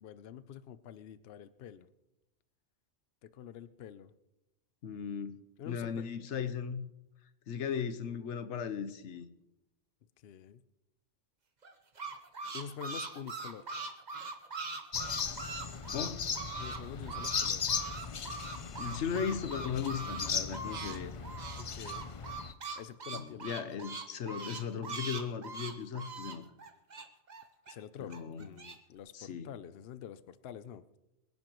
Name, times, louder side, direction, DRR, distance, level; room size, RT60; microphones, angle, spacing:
voice 1, 0.0-1.9 3.2-4.1 5.6-6.1 10.2-10.6 12.5-13.7 16.6-17.7 21.6-22.1 22.8-23.7 27.7-31.0, left 8 dB, 65° left, 0.8 m, -47 dB
voice 2, 4.8-5.4 5.7-6.9 7.5-9.3 15.9-16.2 18.8-21.1 23.1-26.4 28.0-28.5 29.1-29.5, left 7 dB, 90° left, 1.1 m, -37 dB
sound 1, 11.6-16.8 17.0-21.0 21.2-27.7 28.1-28.7, right 3 dB, 40° right, 1.2 m, -41 dB
sound 2, 14.9-22.5, left 6 dB, 45° left, 0.4 m, -37 dB
24.0 x 11.0 x 3.0 m
omnidirectional pair, 1.2 m